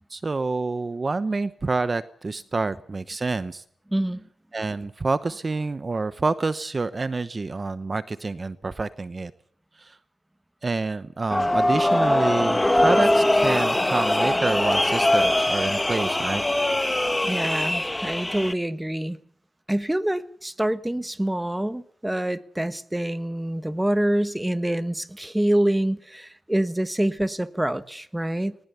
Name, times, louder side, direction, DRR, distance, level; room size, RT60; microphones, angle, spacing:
voice 1, 0.1-3.6 4.5-9.3 9.8-10.0 10.6-16.4, right 3 dB, 40° right, 0.9 m, -27 dB
sound 1, 11.3-18.5, left 1 dB, 15° left, 1.1 m, -22 dB
voice 2, 17.3-19.2 19.7-28.5, right 1 dB, 10° right, 1.3 m, -26 dB
20.0 x 19.5 x 7.0 m
cardioid pair, 70°, 0 cm